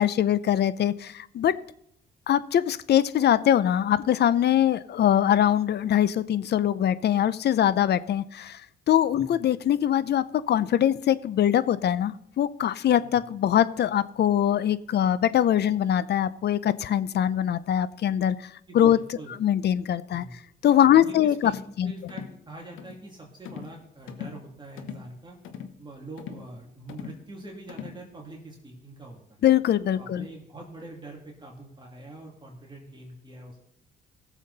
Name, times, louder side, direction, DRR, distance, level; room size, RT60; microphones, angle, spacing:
voice 1, 0.0-1.5 2.3-8.6 8.9-18.5 18.7-19.0 19.4-20.3 20.6-21.5 21.8-21.9 29.4-30.3, left 10 dB, 60° left, 17 dB, 0.6 m, -22 dB
voice 2, 9.2-9.5 13.0-13.3 18.7-19.3 20.1-20.4 20.9-21.5 21.8-25.4 25.8-29.4 29.9-33.6, right 2 dB, 25° right, -1 dB, 2.7 m, -44 dB
sound 1, 21.4-21.7 22.1-22.4 22.8-23.0 23.5-23.8 24.1-24.4 24.8-25.1 25.4-25.8 26.2-26.5 26.9-27.2 27.7-28.0, left 8 dB, 85° left, 1.1 m, -40 dB
17.5 x 7.3 x 4.1 m, 0.75 s
cardioid pair, 90°, 20 cm